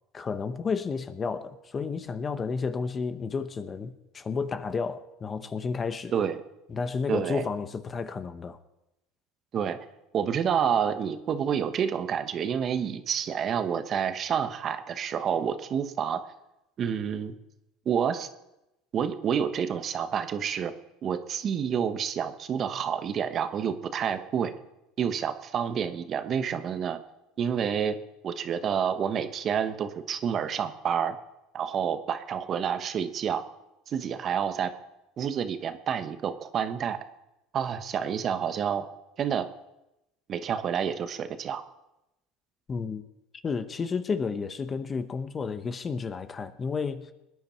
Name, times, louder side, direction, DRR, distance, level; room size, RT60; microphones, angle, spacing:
voice 1, 0.1-6.1 6.7-8.6 42.7-43.0 43.4-47.1, left 5 dB, 30° left, 1.0 m, -31 dB
voice 2, 7.1-7.5 9.5-9.8 10.1-16.2 16.8-17.3 17.8-18.3 18.9-20.7 21.0-24.5 25.0-27.0 27.4-28.0 28.2-31.2 31.5-33.4 33.9-34.7 35.2-37.0 37.5-38.9 39.2-39.5 40.3-41.6, right 8 dB, 45° right, 1.1 m, -28 dB
20.5 x 9.9 x 4.5 m
supercardioid pair, 100°, 0 cm